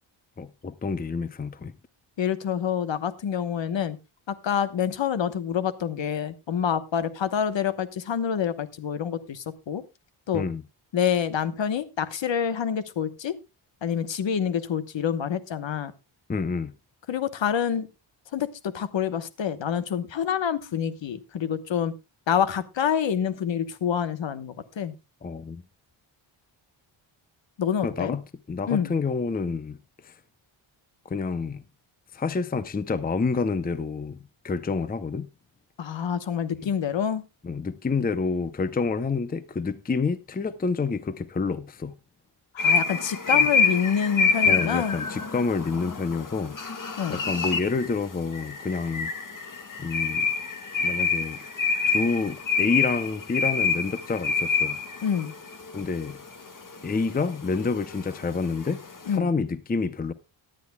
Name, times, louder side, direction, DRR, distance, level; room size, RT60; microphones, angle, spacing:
voice 1, 0.4-1.7 10.3-10.6 16.3-16.7 25.2-25.6 27.8-29.8 30.0-30.1 31.1-31.7 32.1-35.3 36.6-36.7 37.4-41.9 43.3-43.5 44.5-46.6 47.1-49.1 49.8-50.3 50.8-51.4 51.9-54.8 55.7-56.2 56.8-58.8 59.1-60.1, left 4 dB, 20° left, 0.6 m, -28 dB
voice 2, 2.2-4.0 4.3-9.8 10.3-10.4 10.9-13.4 13.8-15.9 17.1-17.9 18.3-18.5 18.7-21.9 22.3-24.9 27.6-28.2 28.7-28.9 35.8-37.2 42.5-45.0 47.0-47.2 55.0-55.3 59.1-59.3, left 8 dB, 65° left, 1.1 m, -27 dB
sound 1, 42.6-59.1, left 4 dB, 40° left, 1.7 m, -27 dB
18.0 x 10.5 x 2.2 m
wide cardioid pair, 150°, 48 cm